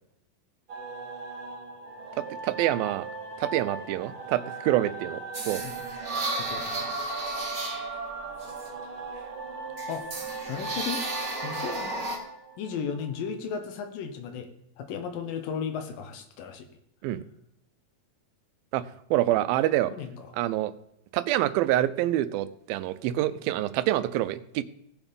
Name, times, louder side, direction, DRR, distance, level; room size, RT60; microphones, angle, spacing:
sound 1, 0.7-13.3, right 4 dB, 55° right, 2.3 m, -39 dB
voice 1, 2.1-3.1 3.4-5.6 17.0-17.2 18.7-19.9 20.3-20.7 21.1-24.6, right 14 dB, 85° right, 14 dB, 2.4 m, -26 dB
sound 2, 5.3-9.3 9.8-12.2, right 2 dB, 30° right, 1.3 m, -34 dB
voice 2, 6.4-7.0 8.8-8.9 9.9-10.0 10.5-11.0 11.4-12.0 12.6-14.5 14.8-16.7 19.9-20.3, left 6 dB, 75° left, 7 dB, 2.8 m, -35 dB
17.0 x 7.1 x 5.3 m, 0.76 s
omnidirectional pair, 4.1 m